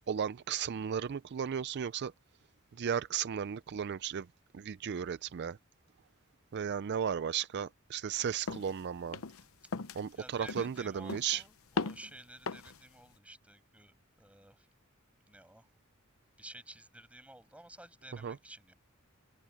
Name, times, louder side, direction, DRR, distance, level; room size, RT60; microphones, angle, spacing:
voice 1, 0.0-2.1 2.8-4.3 4.5-5.6 6.5-9.2 10.0-11.4 18.2-18.4, right 8 dB, 55° right, 0.4 m, -35 dB
sound 1, 8.5-8.7 9.1-9.4 9.7-10.1 10.5-10.8 11.1-11.4 11.8-12.1 12.5-12.8, left 4 dB, 85° left, 0.8 m, -37 dB
voice 2, 10.1-14.7 15.3-15.7 16.4-18.7, right 1 dB, 5° right, 6.3 m, -53 dB
head